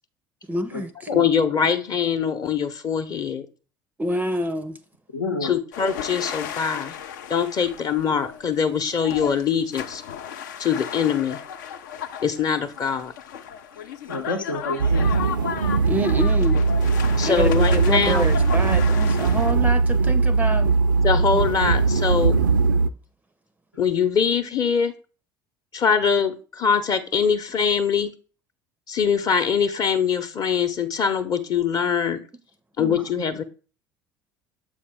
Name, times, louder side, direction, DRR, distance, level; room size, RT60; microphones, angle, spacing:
voice 1, 0.5-1.1 4.0-4.8 15.8-16.6 17.2-20.7, right 1 dB, 15° right, 0.5 m, -27 dB
voice 2, 1.1-3.5 5.4-6.9 7.3-10.0 10.6-11.4 12.2-13.1 17.2-18.3 21.0-22.4 23.8-24.9 25.7-28.1 28.9-32.2 32.8-33.4, left 6 dB, 35° left, 0.8 m, -23 dB
voice 3, 5.1-5.5 14.1-15.3 32.8-33.1, left 2 dB, 80° left, 0.9 m, -29 dB
sound 1, 5.7-19.5, left 8 dB, 65° left, 0.5 m, -35 dB
sound 2, 14.8-22.9, right 4 dB, 75° right, 0.4 m, -20 dB
7.2 x 5.1 x 3.4 m
figure-of-eight pair, 60°, 11 cm